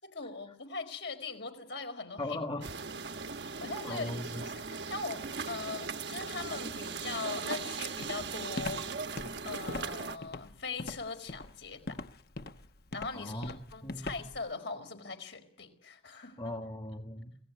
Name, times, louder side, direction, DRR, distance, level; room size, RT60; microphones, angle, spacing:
voice 1, 0.0-2.4 3.4-8.8 9.4-12.0 12.9-16.6, left 3 dB, 70° left, 7 dB, 4.7 m, -41 dB
voice 2, 2.2-2.7 3.8-4.4 13.1-13.5 13.8-14.2 16.4-17.4, left 1 dB, 25° left, 3 dB, 1.7 m, -38 dB
sound 1, 2.6-10.2, right 5 dB, 65° right, 1.1 m, -39 dB
Walk footsteps, 8.0-14.5, left 2 dB, 55° left, 1.0 m, -41 dB
26.0 x 18.0 x 9.6 m, 0.66 s
head